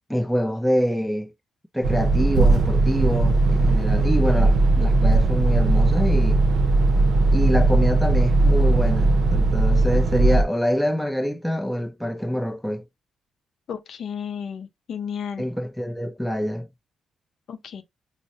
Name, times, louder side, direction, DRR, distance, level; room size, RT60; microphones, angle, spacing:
voice 1, 0.1-1.3 1.7-6.4 7.3-12.8 15.4-16.7, equal, ahead, 0.5 m, -25 dB
sound 1, 1.8-10.4, right 2 dB, 65° right, 0.6 m, -18 dB
voice 2, 13.7-15.4 17.5-17.8, left 7 dB, 60° left, 0.5 m, -33 dB
4.7 x 2.0 x 2.6 m
cardioid pair, 90°, 0 cm